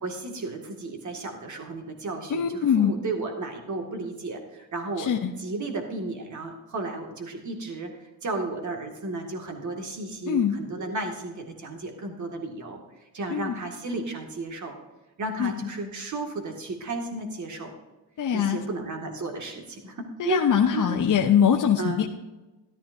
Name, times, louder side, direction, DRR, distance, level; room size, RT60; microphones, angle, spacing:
voice 1, 0.0-5.1 5.4-12.8 13.1-14.8 15.2-17.7 18.3-20.9 21.8-22.0, right 2 dB, 40° right, 3 dB, 2.1 m, -33 dB
voice 2, 2.3-2.9 5.0-5.3 10.3-10.6 13.3-13.6 15.4-15.5 18.2-18.6 20.2-22.1, left 8 dB, 45° left, 2 dB, 0.8 m, -22 dB
14.0 x 12.0 x 2.7 m, 1.1 s
cardioid pair, 130°, 45 cm